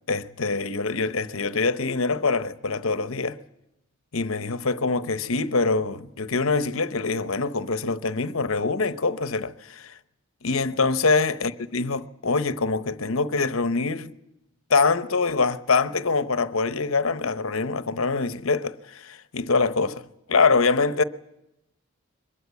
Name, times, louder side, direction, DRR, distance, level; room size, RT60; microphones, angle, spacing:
voice 1, 0.1-3.4 4.1-9.9 10.4-14.1 14.7-20.0 20.3-21.0, left 4 dB, 80° left, 0.9 m, -24 dB
23.0 x 21.5 x 8.3 m
head